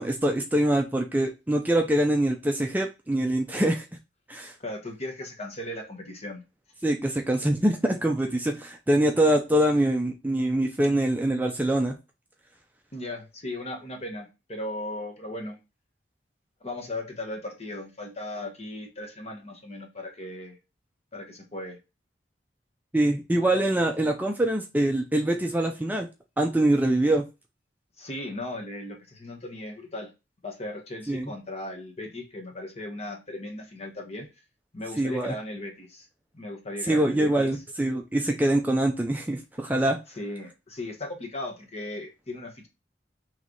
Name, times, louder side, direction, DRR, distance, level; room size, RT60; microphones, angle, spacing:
voice 1, 0.0-3.9 4.3-4.5 6.8-11.9 22.9-26.1 26.4-27.2 31.1-31.3 35.0-35.3 36.9-40.0, right 1 dB, 10° right, 3 dB, 0.4 m, -24 dB
voice 2, 4.6-6.4 12.9-15.6 16.6-20.6 21.1-21.8 28.0-30.1 30.4-34.3 34.7-36.1 36.3-37.6 40.1-42.7, left 1 dB, 40° left, 2 dB, 1.2 m, -37 dB
3.2 x 3.2 x 3.8 m, 0.26 s
head